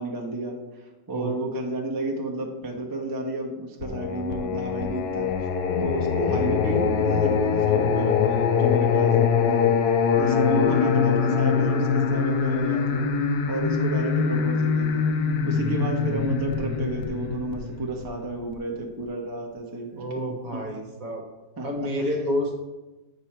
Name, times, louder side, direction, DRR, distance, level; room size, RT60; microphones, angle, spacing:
voice 1, 0.0-5.3 5.8-9.8 10.2-13.1 13.5-15.1 15.4-20.3 20.5-20.6 21.6-22.2, right 2 dB, 15° right, 0 dB, 0.8 m, -31 dB
Singing, 3.8-18.5, left 6 dB, 70° left, 1.1 m, -23 dB
voice 2, 19.9-21.2 21.6-22.6, equal, 55° right, 2 dB, 1.5 m, -29 dB
8.1 x 5.4 x 4.4 m, 1.1 s
omnidirectional pair, 1.9 m